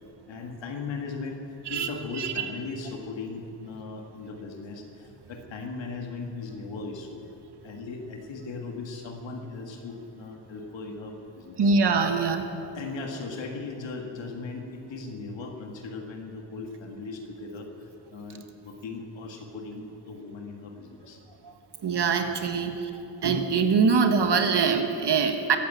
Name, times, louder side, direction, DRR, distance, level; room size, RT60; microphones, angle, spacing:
voice 1, 0.3-7.2 7.6-11.6 12.7-21.2, left 3 dB, 85° left, 2 dB, 1.8 m, -38 dB
voice 2, 2.2-2.5 11.6-12.5 21.4-21.5 21.8-25.6, right 5 dB, 65° right, 6 dB, 1.5 m, -24 dB
14.5 x 8.6 x 9.5 m, 2.8 s
cardioid pair, 50°, 43 cm